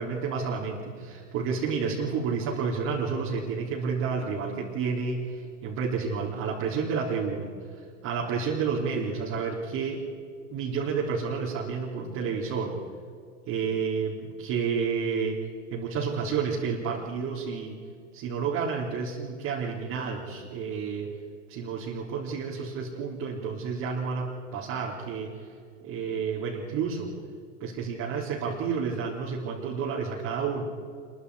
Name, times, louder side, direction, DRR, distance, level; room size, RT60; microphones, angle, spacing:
voice 1, 0.0-10.0 10.5-12.8 13.5-15.4 15.7-17.8 18.1-21.1 21.5-25.3 25.8-27.2 27.6-30.7, right 5 dB, 45° right, -4 dB, 3.7 m, -30 dB
27.0 x 22.5 x 4.9 m, 2.3 s
hypercardioid pair, 100°, 37 cm